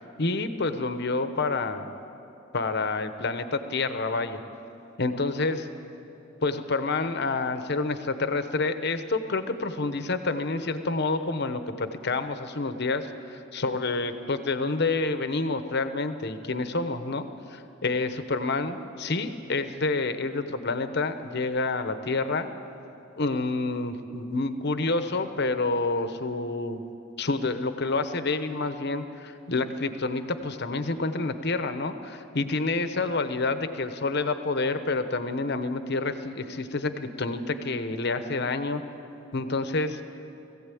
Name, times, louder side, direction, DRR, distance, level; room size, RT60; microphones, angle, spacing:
voice 1, 0.0-1.9 2.5-4.4 5.0-5.7 6.4-22.5 23.2-26.8 27.2-38.8 39.3-40.0, left 3 dB, 55° left, 9 dB, 1.0 m, -28 dB
20.5 x 15.5 x 8.5 m, 2.9 s
head